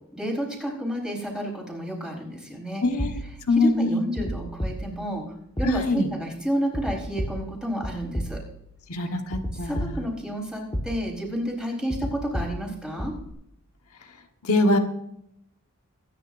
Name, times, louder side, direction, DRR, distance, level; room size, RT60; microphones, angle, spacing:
voice 1, 0.1-2.8 3.6-5.2 5.6-8.4 9.1-9.2 9.6-13.1, equal, 5° right, -1 dB, 4.2 m, -30 dB
voice 2, 2.8-3.1 3.5-4.0 5.6-6.1 8.9-10.0 14.4-14.8, left 2 dB, 75° left, 3 dB, 1.4 m, -23 dB
sound 1, 3.0-3.6 4.2-5.2 5.6-6.2 6.7-8.8 9.3-10.4 10.7-11.4 11.9-13.3, equal, 20° left, 1.6 m, -33 dB
23.5 x 10.0 x 2.6 m, 0.77 s
head